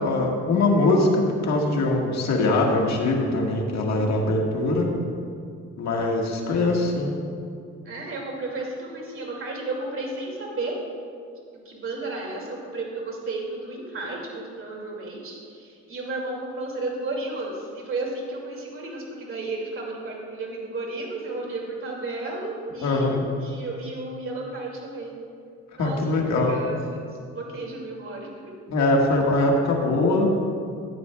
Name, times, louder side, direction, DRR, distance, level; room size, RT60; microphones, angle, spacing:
voice 1, 0.0-4.9 5.8-7.1 22.8-23.2 25.8-26.5 28.7-30.3, left 2 dB, 65° left, 0 dB, 1.7 m, -22 dB
voice 2, 7.9-10.8 11.7-25.2 25.8-26.8 27.3-28.3, right 2 dB, 45° right, -2 dB, 2.4 m, -33 dB
13.5 x 9.4 x 2.3 m, 2.3 s
cardioid pair, 90°, 30 cm